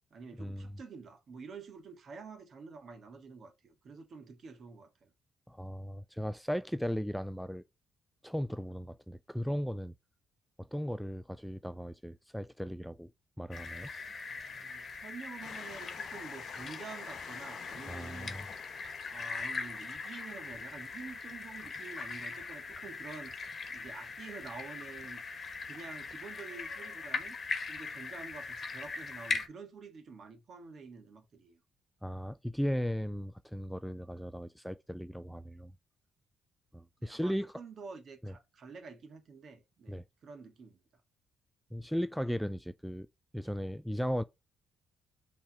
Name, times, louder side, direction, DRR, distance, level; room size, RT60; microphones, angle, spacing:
voice 1, 0.1-5.1 14.2-18.4 19.0-23.3 23.7-25.2 25.6-27.4 27.7-31.6 37.0-40.8, right 5 dB, 55° right, 1.6 m, -48 dB
voice 2, 5.5-7.6 8.2-9.9 10.6-13.1 13.4-13.9 17.7-18.5 32.0-35.7 36.7-37.6 38.2-38.3 39.9-40.0 41.7-43.1 43.3-44.2, equal, ahead, 0.4 m, -36 dB
sound 1, 13.5-29.5, left 4 dB, 45° left, 1.3 m, -41 dB
Train, 15.4-26.6 27.3-27.4 27.6-27.7, left 8 dB, 65° left, 0.6 m, -53 dB
5.7 x 3.5 x 5.6 m
cardioid pair, 90°, 0 cm